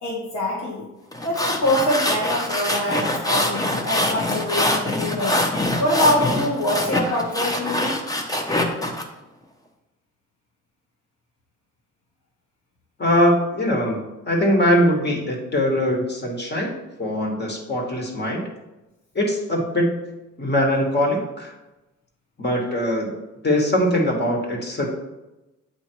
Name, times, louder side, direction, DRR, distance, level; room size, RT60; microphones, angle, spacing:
voice 1, 0.0-0.8 1.2-5.4 5.8-7.9, left 1 dB, 90° left, -6 dB, 1.4 m, -24 dB
sound 1, 1.1-9.0, left 1 dB, 10° left, 0.8 m, -24 dB
voice 2, 13.0-14.0 14.2-16.7 17.0-18.4 19.1-19.9 20.4-21.5 22.4-24.9, equal, 35° left, 0 dB, 1.5 m, -21 dB
7.9 x 2.7 x 4.5 m, 1.0 s
cardioid pair, 90°, 30 cm